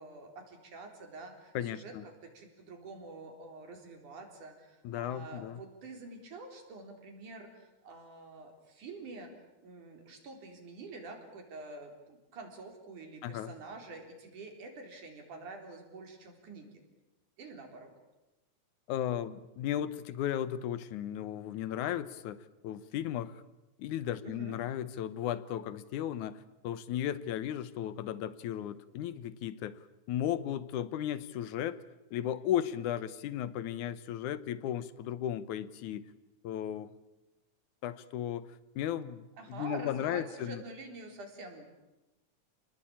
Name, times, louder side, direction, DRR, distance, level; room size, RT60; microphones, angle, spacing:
voice 1, 0.0-9.3 9.6-16.8 17.4-17.9 24.2-24.6 39.4-41.7, right 3 dB, 85° right, 4 dB, 5.4 m, -47 dB
voice 2, 1.5-2.0 4.8-5.6 13.2-13.5 18.9-23.4 23.8-29.8 30.1-31.8 32.1-36.0 36.4-36.9 37.8-40.6, left 10 dB, 80° left, 15 dB, 2.5 m, -35 dB
29.0 x 20.0 x 8.8 m, 1.0 s
omnidirectional pair, 3.4 m